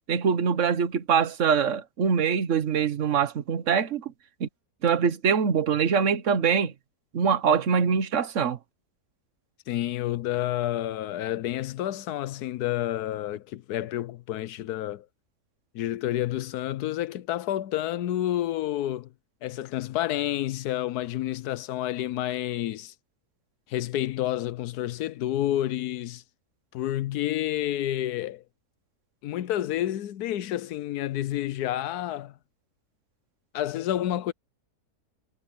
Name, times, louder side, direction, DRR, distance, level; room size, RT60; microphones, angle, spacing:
voice 1, 0.1-4.1 4.4-4.5 4.8-6.7 7.1-8.6, right 6 dB, 55° right, 1.4 m, -23 dB
voice 2, 9.7-15.1 15.7-19.1 19.4-22.9 23.7-26.2 26.7-28.4 29.2-32.3 33.5-34.3, left 13 dB, 80° left, 1.2 m, -29 dB
omnidirectional pair, 1.7 m